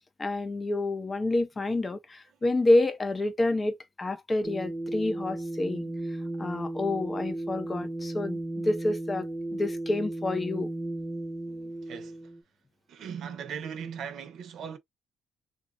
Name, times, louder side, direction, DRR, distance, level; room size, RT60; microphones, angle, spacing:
voice 1, 0.2-5.9 6.4-8.4 8.6-10.7, left 2 dB, 15° left, 0.6 m, -28 dB
sound 1, 4.4-12.4, right 1 dB, 5° right, 1.1 m, -35 dB
voice 2, 11.5-12.3 12.9-14.8, right 7 dB, 55° right, 0.8 m, -39 dB
4.0 x 2.4 x 2.5 m
cardioid pair, 165°, 0 cm